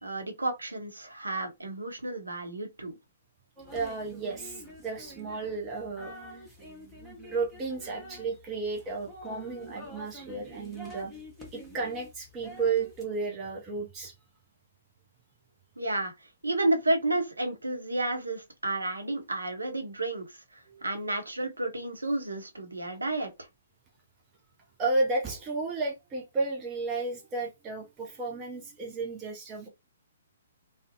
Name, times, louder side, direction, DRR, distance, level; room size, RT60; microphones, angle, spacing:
voice 1, 0.0-3.0 15.8-23.5, right 2 dB, 75° right, 0.6 m, -31 dB
sound 1, 3.6-13.1, equal, 5° right, 0.9 m, -47 dB
voice 2, 3.7-6.2 7.3-11.3 11.5-14.1 20.7-20.9 24.8-29.7, right 3 dB, 20° right, 0.5 m, -33 dB
2.4 x 2.0 x 2.5 m
figure-of-eight pair, 125°, 0 cm